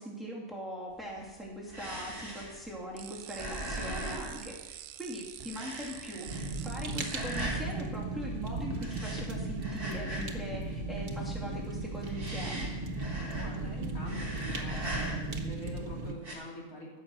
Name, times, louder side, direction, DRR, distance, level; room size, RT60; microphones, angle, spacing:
voice 1, 0.0-12.7, right 1 dB, ahead, -4 dB, 2.9 m, -41 dB
sound 1, 1.0-5.1 5.4-6.7 7.0-7.7 8.7-10.5 10.8-11.3 11.8-13.7 14.0-15.5 16.1-16.4, right 1 dB, 35° right, 3.1 m, -40 dB
sound 2, 3.0-7.4, right 12 dB, 85° right, 1.1 m, -47 dB
voice 2, 3.6-4.0 13.3-17.0, left 1 dB, 70° left, -3 dB, 3.3 m, -45 dB
Fire, 6.3-16.1, right 2 dB, 60° right, 1.6 m, -36 dB
14.5 x 6.4 x 7.4 m, 1.1 s
omnidirectional pair, 1.5 m